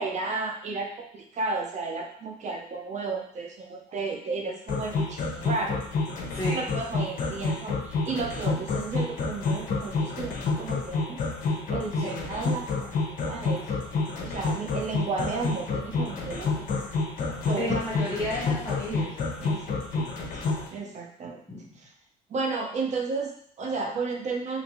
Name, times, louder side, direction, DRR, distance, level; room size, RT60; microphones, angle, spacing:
voice 1, 0.0-5.8 6.5-11.2 11.7-13.7 14.2-16.9 17.2-17.8 19.4-20.1 20.3-20.4 20.7-21.4 21.8-21.9 22.3-24.6, right 4 dB, 45° right, 1 dB, 0.6 m, -33 dB
sound 1, 4.7-20.7, left 4 dB, 50° left, 0.7 m, -28 dB
voice 2, 6.3-6.6 12.0-12.2 17.5-19.5 21.5-21.8, left 1 dB, 15° left, -7 dB, 0.8 m, -32 dB
2.8 x 2.5 x 2.9 m, 0.67 s
cardioid pair, 110°, 17 cm